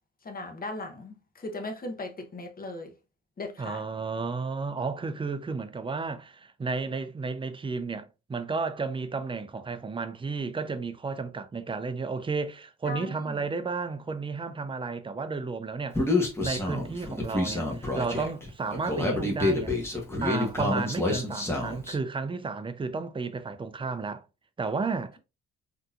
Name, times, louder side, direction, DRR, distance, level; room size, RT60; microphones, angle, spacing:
voice 1, 0.2-2.9 3.4-3.8 12.9-13.5, left 2 dB, 30° left, 0.9 m, -38 dB
voice 2, 3.6-19.7 20.2-24.2 24.6-25.2, right 4 dB, 15° right, 0.5 m, -32 dB
Human voice, 15.9-21.9, left 2 dB, 10° left, 1.2 m, -28 dB
3.7 x 2.8 x 2.4 m
cardioid pair, 90°, 30 cm